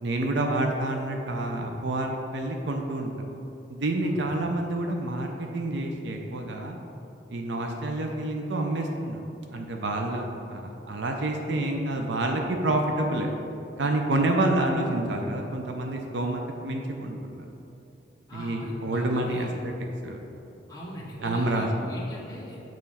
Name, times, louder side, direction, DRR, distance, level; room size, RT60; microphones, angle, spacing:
voice 1, 0.0-3.1 3.7-6.8 7.3-9.2 9.5-13.4 13.8-17.4 18.3-19.5 20.0-20.2 21.2-21.9, right 2 dB, 70° right, 2 dB, 0.5 m, -28 dB
voice 2, 4.0-4.4 10.0-10.3 18.3-19.5 20.7-22.6, equal, 20° left, -6 dB, 1.0 m, -41 dB
6.8 x 3.1 x 5.5 m, 2.9 s
head